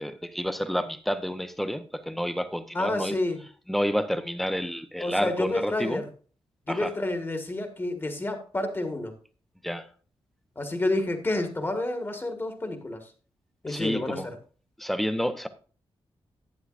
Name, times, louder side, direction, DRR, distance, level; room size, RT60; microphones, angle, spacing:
voice 1, 0.0-3.2 3.7-6.0 6.7-6.9 9.6-9.9 13.7-14.3 14.8-15.5, equal, ahead, 0.8 m, -29 dB
voice 2, 2.7-3.4 5.0-6.0 6.7-9.1 10.5-13.0 13.6-14.3, left 2 dB, 25° left, 1.6 m, -29 dB
11.5 x 9.3 x 2.5 m
wide cardioid pair, 125°, 10 cm